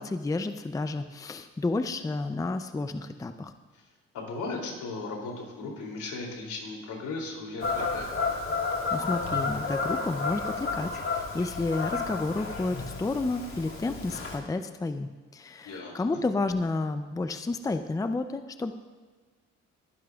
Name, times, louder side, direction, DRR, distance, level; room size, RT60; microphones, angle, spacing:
voice 1, 0.0-3.5 8.9-18.7, left 3 dB, 10° left, 9 dB, 0.5 m, -31 dB
voice 2, 4.1-8.1 15.6-16.0, left 3 dB, 80° left, 0 dB, 3.0 m, -37 dB
Fowl / Bird vocalization bird call bird song, 7.6-14.4, left 4 dB, 45° left, 2.3 m, -31 dB
22.0 x 10.0 x 2.4 m, 1.4 s
cardioid pair, 90°, 30 cm